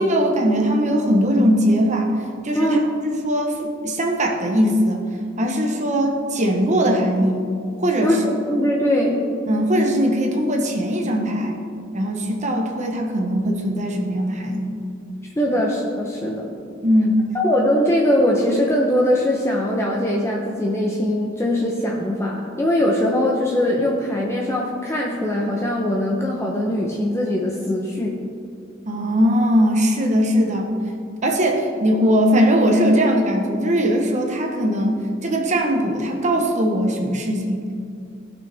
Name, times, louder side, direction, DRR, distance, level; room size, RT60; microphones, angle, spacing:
voice 1, 0.0-2.8 3.2-5.0 5.4-7.5 7.8-8.2 9.5-11.6 11.9-14.8 16.8-17.3 28.9-30.7 31.2-37.9, equal, 35° right, 1 dB, 1.0 m, -20 dB
voice 2, 8.5-9.2 15.4-16.6 17.3-28.1, left 1 dB, 15° left, -2 dB, 0.8 m, -21 dB
16.5 x 6.2 x 3.4 m, 2.4 s
head